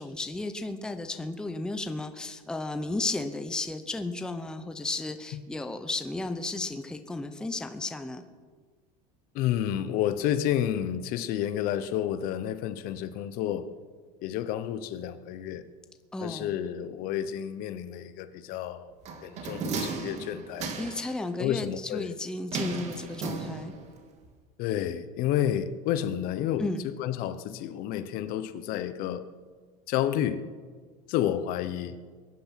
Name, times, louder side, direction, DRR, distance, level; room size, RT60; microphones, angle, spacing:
voice 1, 0.0-8.2 16.1-16.6 20.8-23.7 26.6-26.8, left 2 dB, 5° left, 8 dB, 0.7 m, -34 dB
voice 2, 9.3-13.7 14.2-15.7 16.2-18.9 19.2-20.7 21.4-22.1 22.7-22.8 24.6-29.2 29.9-30.4 31.1-32.0, left 11 dB, 50° left, 13 dB, 0.9 m, -30 dB
sound 1, 19.1-21.2 22.5-24.0 24.2-24.3, right 4 dB, 35° right, 2.2 m, -35 dB
22.5 x 10.5 x 5.8 m, 1.5 s
cardioid pair, 155°, 19 cm